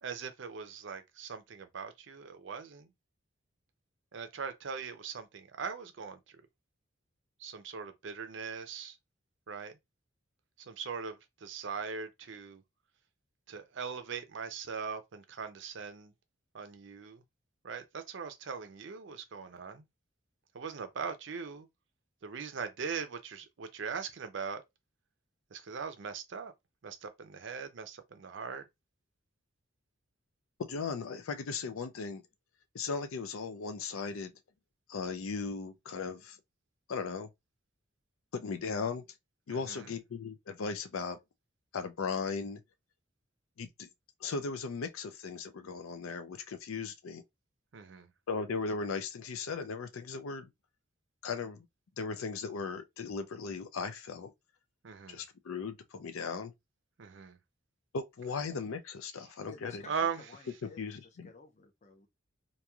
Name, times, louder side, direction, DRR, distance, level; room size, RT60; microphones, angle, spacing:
voice 1, 0.0-2.9 4.1-6.2 7.4-9.0 9.5-9.7 10.6-12.6 13.5-16.1 16.5-17.2 17.6-19.8 20.5-21.7 22.2-24.6 25.5-26.5 26.8-28.6 39.5-40.0 47.7-48.1 54.8-55.2 57.0-57.4 59.9-60.3, right 6 dB, 65° right, 0.5 m, -40 dB
voice 2, 30.6-32.2 32.7-34.3 34.9-36.4 36.9-37.3 38.3-39.0 39.5-41.2 41.7-42.6 43.6-43.9 44.2-47.2 48.3-50.5 51.2-51.6 52.0-54.3 55.1-56.5 57.9-59.8 60.6-61.3, left 5 dB, 85° left, 0.5 m, -37 dB
voice 3, 59.5-60.8 61.2-62.1, left 4 dB, 35° left, 0.5 m, -53 dB
3.0 x 2.6 x 2.3 m
head